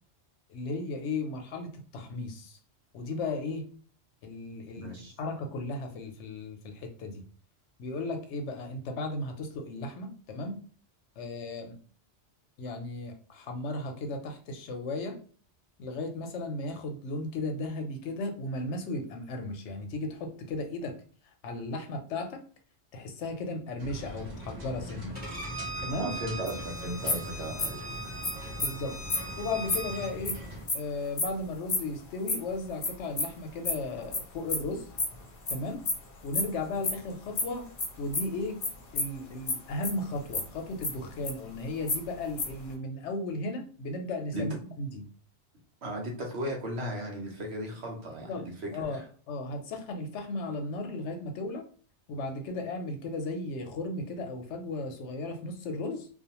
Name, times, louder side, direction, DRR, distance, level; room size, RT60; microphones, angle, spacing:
voice 1, 0.5-2.6 2.9-3.7 4.2-4.9 5.2-7.2 7.8-10.6 11.2-11.8 12.6-15.2 15.8-21.0 21.4-22.4 22.9-25.2 25.8-26.1 28.6-29.0 29.4-30.4 30.7-34.9 35.5-35.8 36.2-37.7 38.0-38.6 38.9-45.0 48.2-48.5 48.7-49.0 49.3-51.6 52.1-56.1, left 2 dB, 80° left, 4 dB, 0.9 m, -35 dB
voice 2, 4.7-5.2 25.9-27.9 44.3-44.5 45.8-49.1, right 1 dB, 65° right, 0 dB, 1.0 m, -36 dB
sound 1, 23.8-30.7, equal, 40° right, 0.8 m, -42 dB
Bowed string instrument, 25.2-30.1, right 2 dB, 10° left, 1.0 m, -40 dB
sound 2, 26.5-26.6 27.1-27.3 27.6-27.8 28.2-28.3 28.6-28.7 29.1-29.2 29.7-29.8 30.2-30.3 30.7-30.8 31.2-31.3 31.7-31.8 32.3-32.4 32.8-32.9 33.2-33.3 33.6-33.7 34.1-34.2 34.5-34.7 35.0-35.5 35.8-35.9 36.3-36.4 36.7-36.9 37.3-37.4 37.8-37.9 38.1-38.3 38.6-38.7 39.0-39.2 39.5-39.6 39.8-40.4 40.8-41.6 41.9-42.7, left 3 dB, 50° left, 0.8 m, -28 dB
2.3 x 2.3 x 2.8 m, 0.43 s
omnidirectional pair, 1.2 m